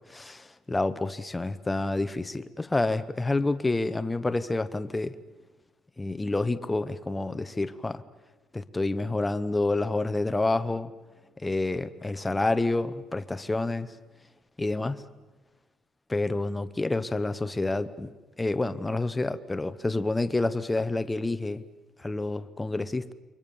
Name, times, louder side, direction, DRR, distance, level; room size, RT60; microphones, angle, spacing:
voice 1, 0.0-5.1 6.0-8.0 8.5-10.9 11.4-13.9 14.6-15.0 16.1-21.6 22.0-23.1, left 2 dB, 10° left, 0.8 m, -28 dB
28.5 x 24.0 x 7.0 m
cardioid pair, 180°, 0 cm